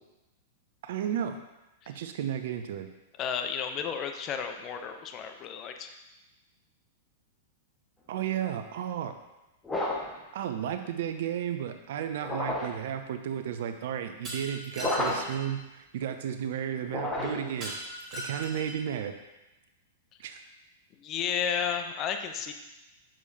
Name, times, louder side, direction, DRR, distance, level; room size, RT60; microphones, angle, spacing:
voice 1, 0.8-1.4 1.9-2.9 8.1-9.1 10.3-17.7 18.1-19.1 20.2-20.4, right 9 dB, 60° right, 8 dB, 0.5 m, -33 dB
voice 2, 3.2-6.0 21.0-22.5, left 7 dB, 35° left, 6 dB, 0.7 m, -32 dB
sound 1, 9.6-10.2 12.2-12.8 14.8-15.4 16.9-17.6, left 1 dB, 10° left, 1.4 m, -31 dB
Shatter, 14.2-15.4 17.6-18.9, equal, 25° right, 2.4 m, -39 dB
7.4 x 6.3 x 2.7 m, 1.0 s
figure-of-eight pair, 100°, 0 cm